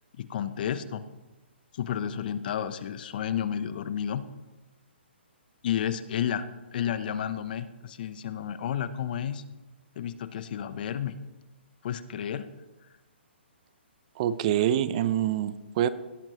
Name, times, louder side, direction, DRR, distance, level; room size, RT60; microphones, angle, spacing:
voice 1, 0.2-1.0 1.7-4.2 5.6-9.4 10.0-11.2 11.8-12.5, left 9 dB, 50° left, 13 dB, 0.7 m, -31 dB
voice 2, 14.2-15.9, right 11 dB, 35° right, 14 dB, 0.5 m, -25 dB
17.0 x 8.8 x 3.0 m, 1.1 s
hypercardioid pair, 145°, 6 cm